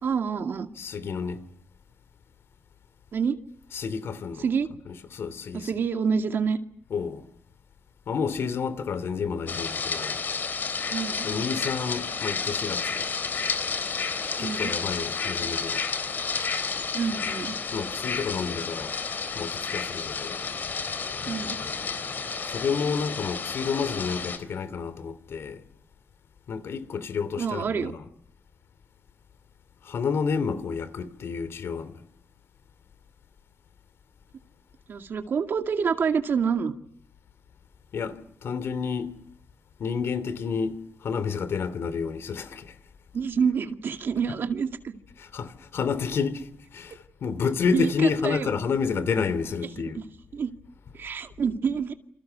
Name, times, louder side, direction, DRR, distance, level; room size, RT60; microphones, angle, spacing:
voice 1, 0.0-0.7 3.1-3.4 4.4-4.7 5.5-6.6 10.9-11.3 14.4-14.7 16.9-17.6 21.3-21.6 27.4-27.9 34.9-36.7 43.1-45.0 47.7-48.5 49.8-50.0 50.3-50.5 50.9-51.9, right 6 dB, 60° right, 2.3 m, -27 dB
voice 2, 0.8-1.4 3.7-4.4 4.9-5.7 6.9-7.2 8.1-10.2 11.2-13.0 14.4-15.8 17.7-19.0 19.3-20.4 22.4-25.6 26.5-28.0 29.8-32.0 37.9-39.1 39.8-42.8 45.2-50.0, left 5 dB, 75° left, 2.7 m, -30 dB
sound 1, 9.5-24.4, left 5 dB, 50° left, 3.7 m, -31 dB
28.5 x 28.0 x 6.9 m
wide cardioid pair, 170°, 4 cm